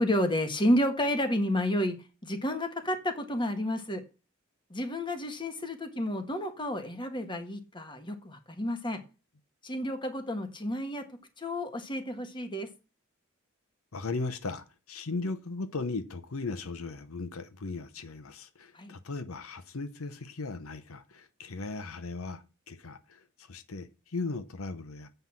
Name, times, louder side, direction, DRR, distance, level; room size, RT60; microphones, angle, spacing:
voice 1, 0.0-4.0 4.7-9.0 9.6-11.0 11.4-12.7 18.7-18.9, left 1 dB, 25° left, 1.6 m, -30 dB
voice 2, 13.9-25.1, left 3 dB, 85° left, 0.9 m, -37 dB
8.0 x 5.7 x 7.3 m
head